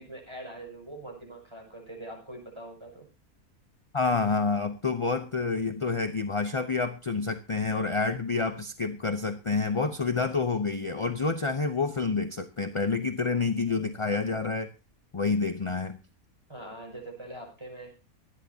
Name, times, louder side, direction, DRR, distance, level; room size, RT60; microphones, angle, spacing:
voice 1, 0.0-3.1 16.5-17.9, right 1 dB, 15° right, 1 dB, 6.2 m, -43 dB
voice 2, 3.9-14.7 15.1-16.0, left 4 dB, 30° left, 8 dB, 0.6 m, -28 dB
24.5 x 10.5 x 2.8 m, 0.30 s
omnidirectional pair, 1.6 m